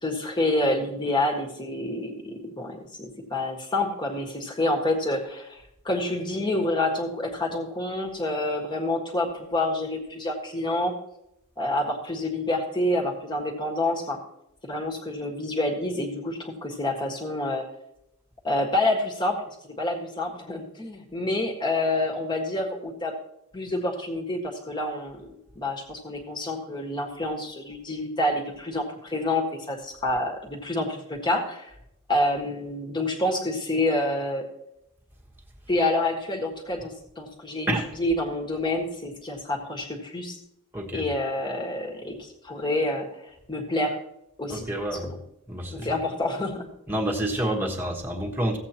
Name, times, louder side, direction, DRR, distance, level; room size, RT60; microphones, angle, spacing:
voice 1, 0.0-10.9 11.6-14.2 14.6-17.6 18.4-19.4 19.6-23.1 23.5-31.7 32.1-34.4 35.7-37.7 38.0-40.4 40.9-43.9 44.4-44.7 45.0-45.2 45.7-46.7, left 1 dB, 20° left, 2 dB, 1.6 m, -28 dB
voice 2, 44.5-45.1 45.5-45.9 46.9-48.6, right 1 dB, 10° right, -1 dB, 1.4 m, -28 dB
15.5 x 8.1 x 2.9 m, 0.81 s
head